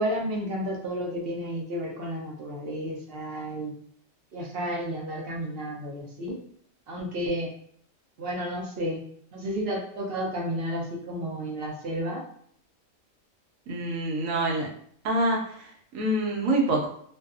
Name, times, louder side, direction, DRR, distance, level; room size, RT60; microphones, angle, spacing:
voice 1, 0.0-3.7 4.3-6.4 6.9-7.5 8.2-9.0 9.3-12.2, equal, 60° right, -1 dB, 0.7 m, -31 dB
voice 2, 13.7-14.7 15.0-16.9, right 1 dB, 75° right, 0 dB, 1.0 m, -26 dB
2.6 x 2.3 x 2.3 m, 0.64 s
omnidirectional pair, 1.4 m